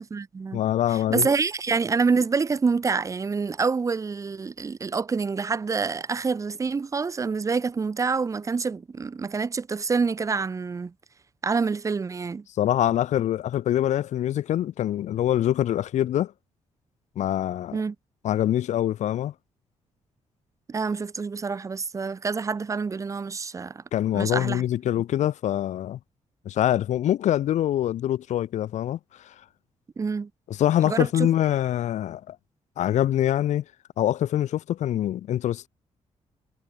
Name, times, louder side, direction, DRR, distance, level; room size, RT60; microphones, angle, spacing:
voice 1, 0.0-0.6 0.9-10.9 11.4-12.4 17.7-17.9 20.7-23.8 24.1-24.6 30.0-30.3 30.9-31.3, right 4 dB, 25° right, 6.1 m, -27 dB
voice 2, 0.5-1.3 12.6-16.3 17.2-17.8 18.2-19.3 23.9-26.0 26.4-29.0 30.5-32.4 32.8-33.6 34.0-35.7, left 12 dB, 85° left, 4.5 m, -24 dB
wide cardioid pair, 170°, 12 cm